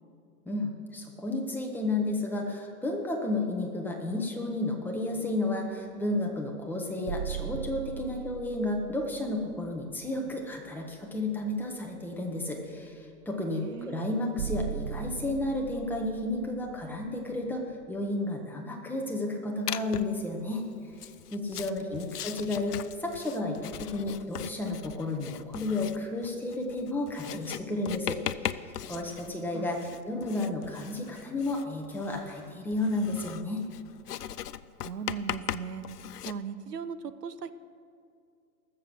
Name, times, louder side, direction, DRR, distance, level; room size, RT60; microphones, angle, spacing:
voice 1, 0.4-20.6 21.3-29.8 30.0-33.6, left 2 dB, 5° left, 0 dB, 1.3 m, -32 dB
sound 1, 6.9-10.6 10.9-11.0 14.4-18.0, right 8 dB, 45° right, 0.9 m, -39 dB
voice 2, 13.5-14.0 21.5-21.7 22.0-22.1 29.5-29.8 34.8-35.8 36.3-37.5, right 6 dB, 85° right, 12 dB, 0.9 m, -38 dB
Writing, 19.7-20.2 20.9-36.3, left 11 dB, 80° left, 0.6 m, -39 dB
18.5 x 7.4 x 6.3 m, 2.4 s
hypercardioid pair, 130°, 46 cm